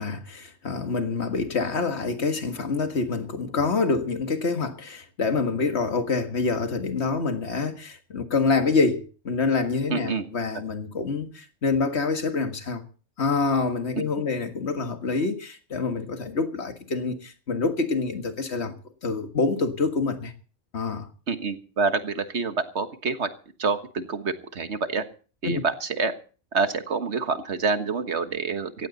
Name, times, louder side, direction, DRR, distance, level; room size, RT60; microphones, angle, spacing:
voice 1, 0.0-12.8 13.2-18.7 19.0-20.3 20.7-21.1 25.4-25.6, left 4 dB, 60° left, 2.0 m, -26 dB
voice 2, 9.9-10.3 21.3-23.3 23.6-25.0 25.4-26.1 26.5-28.9, right 4 dB, 60° right, 1.7 m, -27 dB
18.0 x 15.5 x 4.1 m
omnidirectional pair, 1.3 m